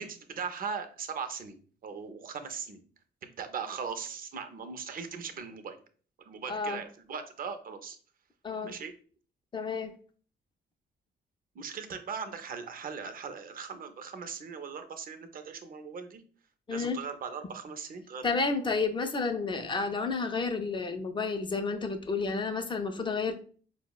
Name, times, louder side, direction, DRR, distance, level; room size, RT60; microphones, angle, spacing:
voice 1, 0.0-2.9 3.3-5.8 6.3-8.0 8.6-8.9 11.5-16.2 16.7-18.4, right 6 dB, 45° right, 8 dB, 0.5 m, -39 dB
voice 2, 6.5-6.8 8.4-8.7 9.5-9.9 16.7-17.0 18.2-23.3, left 4 dB, 25° left, 7 dB, 0.4 m, -31 dB
4.1 x 2.0 x 2.3 m, 0.43 s
cardioid pair, 90°, 20 cm